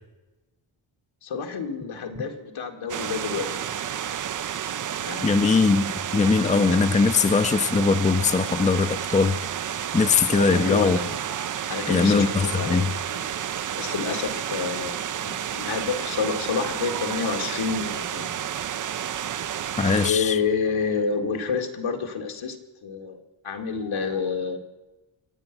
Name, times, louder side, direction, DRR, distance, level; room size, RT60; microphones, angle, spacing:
voice 1, 1.2-3.6 5.0-5.6 10.3-11.1 11.7-13.3 13.8-18.3 19.9-22.6 22.8-24.6, left 5 dB, 80° left, 4 dB, 2.1 m, -29 dB
sound 1, 2.9-20.1, right 9 dB, 45° right, 0.5 m, -31 dB
voice 2, 5.2-5.9 6.1-9.4 9.9-11.0 11.9-12.9 19.8-20.4, left 4 dB, 15° left, 10 dB, 0.6 m, -20 dB
25.5 x 8.8 x 6.0 m, 1.1 s
wide cardioid pair, 105°, 47 cm